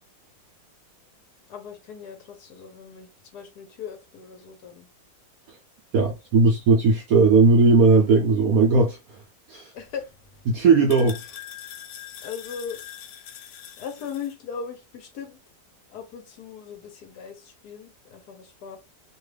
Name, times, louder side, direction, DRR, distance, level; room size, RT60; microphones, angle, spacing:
voice 1, 1.5-4.9 6.1-6.5 9.7-10.1 12.2-12.8 13.1-15.4 15.9-18.8, left 7 dB, 70° left, 1.1 m, -39 dB
voice 2, 5.9-9.2 9.5-9.7 10.5-11.2, right 4 dB, 70° right, 0.8 m, -18 dB
sound 1, 9.8-14.3, left 10 dB, 90° left, 1.3 m, -43 dB
2.9 x 2.3 x 3.2 m
omnidirectional pair, 2.0 m